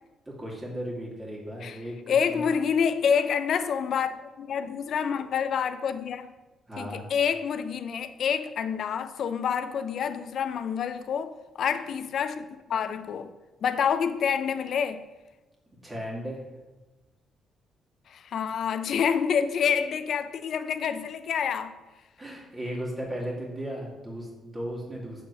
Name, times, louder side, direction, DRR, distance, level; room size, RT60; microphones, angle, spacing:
voice 1, 0.3-2.5 6.7-7.1 15.8-16.4 22.2-25.2, equal, 20° right, 2.2 m, -36 dB
voice 2, 2.1-6.3 6.8-13.3 13.6-15.0 18.1-21.8, left 7 dB, 65° left, 0.5 m, -27 dB
6.5 x 4.3 x 6.2 m
cardioid pair, 90°, 0 cm